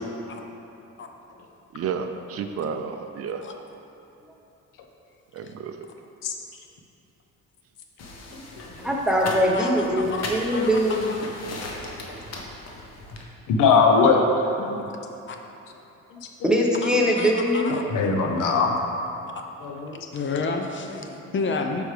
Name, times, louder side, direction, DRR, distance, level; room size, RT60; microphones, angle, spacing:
voice 1, 1.7-3.4 5.3-5.8, right 6 dB, 50° right, 7 dB, 0.4 m, -31 dB
sound 1, 8.0-13.2, left 2 dB, 55° left, 0.9 m, -37 dB
voice 2, 8.8-11.2 16.4-17.7, equal, 5° right, -3 dB, 0.9 m, -22 dB
voice 3, 9.5-11.4 14.6-14.8 15.3-15.4 16.8-17.8 20.1-21.8, left 4 dB, 40° left, 4 dB, 0.5 m, -31 dB
voice 4, 13.5-14.3 17.9-18.8 19.6-20.0, left 5 dB, 80° left, 3 dB, 0.8 m, -19 dB
8.0 x 5.2 x 3.3 m, 2.9 s
cardioid pair, 105°, 31 cm